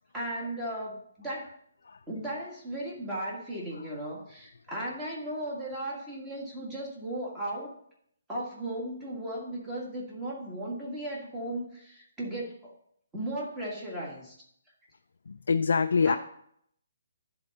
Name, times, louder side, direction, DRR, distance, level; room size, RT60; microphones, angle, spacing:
voice 1, 0.1-1.5 2.1-7.7 8.3-12.7 13.1-14.3 16.1-16.2, right 1 dB, 10° right, -4 dB, 1.7 m, -36 dB
voice 2, 15.3-16.2, left 5 dB, 75° left, 7 dB, 0.4 m, -25 dB
10.5 x 3.9 x 5.3 m, 0.69 s
hypercardioid pair, 165°, 0 cm